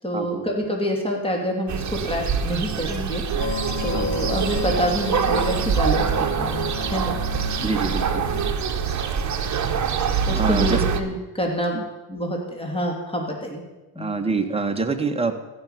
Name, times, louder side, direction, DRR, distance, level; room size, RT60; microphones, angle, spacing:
voice 1, 0.0-7.6 8.8-9.0 10.3-11.7 12.1-13.6 13.9-14.1, equal, 10° left, 1 dB, 3.2 m, -27 dB
sound 1, 1.7-11.0, right 7 dB, 35° right, 1.5 m, -25 dB
sound 2, 3.4-8.5, left 5 dB, 70° left, 3.2 m, -32 dB
voice 2, 7.6-8.2 10.3-10.8 11.7-11.8 14.0-15.3, right 3 dB, 10° right, 4 dB, 1.6 m, -25 dB
14.5 x 6.3 x 9.5 m, 1.1 s
supercardioid pair, 90°, 49 cm